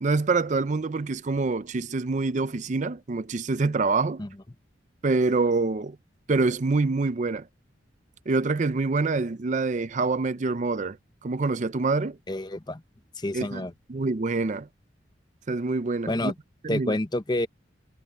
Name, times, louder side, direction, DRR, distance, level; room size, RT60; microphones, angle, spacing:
voice 1, 0.0-4.2 5.0-6.0 6.3-7.5 8.3-11.0 11.2-12.2 13.3-14.7 15.5-16.3 16.6-17.0, right 3 dB, 40° right, 0.5 m, -26 dB
voice 2, 12.3-12.8 13.2-13.7 16.1-16.3 16.7-17.5, left 1 dB, 20° left, 0.8 m, -28 dB
head